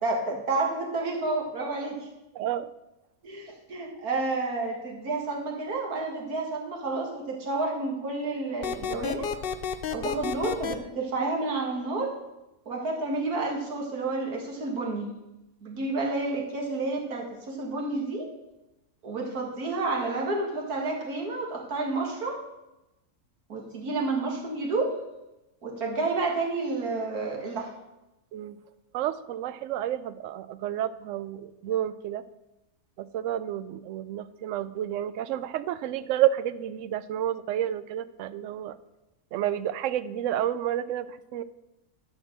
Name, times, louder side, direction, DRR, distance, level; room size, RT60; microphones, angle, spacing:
voice 1, 0.0-2.0 3.2-9.3 9.9-12.1 12.7-15.1 15.6-18.3 19.0-22.4 23.5-24.9 25.6-27.7, right 3 dB, 90° right, -1 dB, 2.3 m, -30 dB
voice 2, 2.3-2.7 28.3-28.6 28.9-32.2 33.0-38.8 39.3-41.4, right 11 dB, 70° right, 14 dB, 0.8 m, -30 dB
sound 1, 8.6-10.8, left 7 dB, 55° left, 0.6 m, -31 dB
11.5 x 4.5 x 7.4 m, 0.97 s
omnidirectional pair, 1.5 m